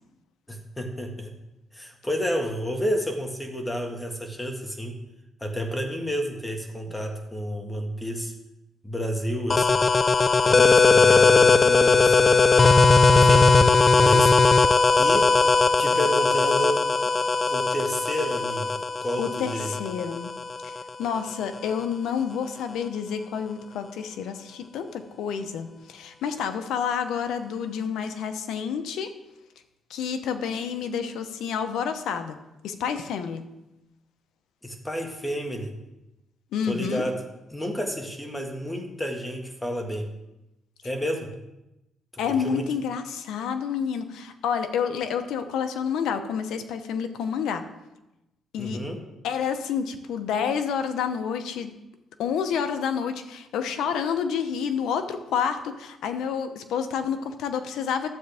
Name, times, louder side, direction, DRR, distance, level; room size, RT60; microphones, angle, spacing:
voice 1, 0.5-1.3 1.7-5.0 5.4-8.3 8.8-9.9 10.4-12.6 13.1-13.5 13.9-14.6 15.0-15.3 15.8-16.8 17.5-19.7 34.6-35.7 36.7-37.2 37.5-40.1 40.8-41.3 42.1-42.7 48.6-49.0, equal, 10° left, 3 dB, 1.7 m, -30 dB
sound 1, 9.5-20.9, left 4 dB, 35° left, 0.4 m, -19 dB
voice 2, 19.2-20.3 20.6-20.7 21.0-29.1 29.9-32.4 32.6-33.4 36.5-37.0 42.2-47.6 48.5-48.8 49.2-51.7 52.2-58.1, left 7 dB, 80° left, 8 dB, 0.8 m, -29 dB
12.0 x 7.7 x 3.5 m, 0.95 s
cardioid pair, 90°, 0 cm